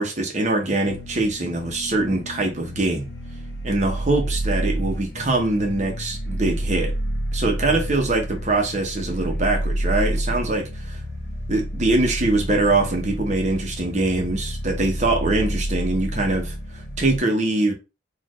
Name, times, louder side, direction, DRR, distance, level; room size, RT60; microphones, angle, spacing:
voice 1, 0.0-3.1 3.6-6.9 7.3-11.0 11.5-17.7, right 2 dB, 40° right, 0.9 m, -23 dB
sound 1, 0.8-17.2, right 1 dB, 55° left, 0.7 m, -29 dB
4.2 x 2.6 x 3.1 m
head